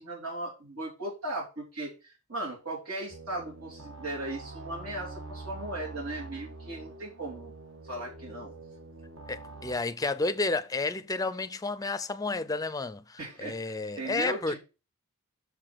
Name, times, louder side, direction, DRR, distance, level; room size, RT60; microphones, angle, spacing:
voice 1, 0.0-7.5 7.8-8.5 13.2-14.6, right 1 dB, 90° right, 3.5 m, -37 dB
sound 1, 3.1-9.8, right 2 dB, 60° right, 1.5 m, -45 dB
voice 2, 9.3-14.6, left 3 dB, 15° left, 0.5 m, -31 dB
6.8 x 4.9 x 5.9 m
head